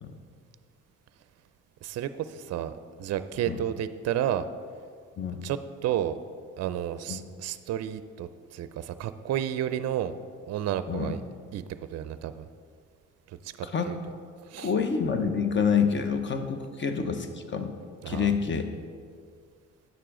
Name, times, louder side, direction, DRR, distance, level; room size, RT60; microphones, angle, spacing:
voice 1, 1.8-2.7 3.0-4.5 5.4-6.2 6.6-10.1 10.4-11.2 11.5-11.6 11.9-12.4 13.4-13.5 13.9-14.0 14.5-14.7 18.0-18.3, right 11 dB, 60° right, 12 dB, 0.4 m, -31 dB
voice 2, 14.6-17.7 18.1-18.7, left 6 dB, 40° left, 7 dB, 0.8 m, -27 dB
9.3 x 6.7 x 3.7 m, 2.1 s
cardioid pair, 90°, 30 cm